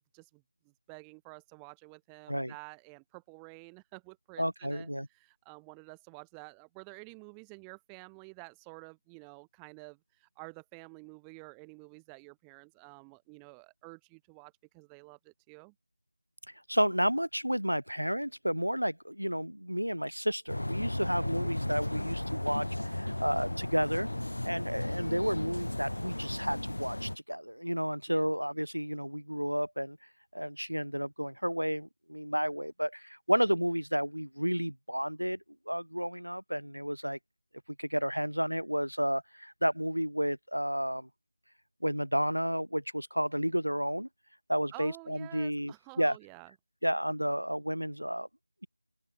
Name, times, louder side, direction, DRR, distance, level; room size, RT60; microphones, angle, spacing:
voice 1, 0.0-15.7 21.3-21.5 28.1-28.3 44.7-46.5, right 40 dB or more, 5° right, 1.5 m, -51 dB
voice 2, 4.4-5.1 16.7-24.1 24.4-30.0 30.3-35.4 35.7-37.2 37.8-41.1 41.8-44.1 44.5-46.2 46.8-48.3, equal, 85° right, 1.1 m, -31 dB
sound 1, 20.5-27.2, left 1 dB, 65° left, 1.3 m, -35 dB
open air
figure-of-eight pair, 170°, 0 cm